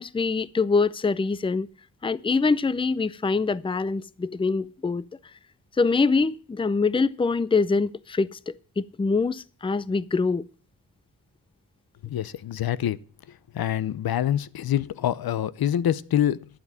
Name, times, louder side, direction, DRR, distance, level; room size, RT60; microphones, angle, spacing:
voice 1, 0.0-1.7 2.0-5.0 5.8-10.4, left 4 dB, 15° left, 0.5 m, -24 dB
voice 2, 12.0-13.0 13.3-16.5, left 11 dB, 85° left, 0.7 m, -26 dB
12.0 x 7.4 x 7.4 m
wide cardioid pair, 100°, 36 cm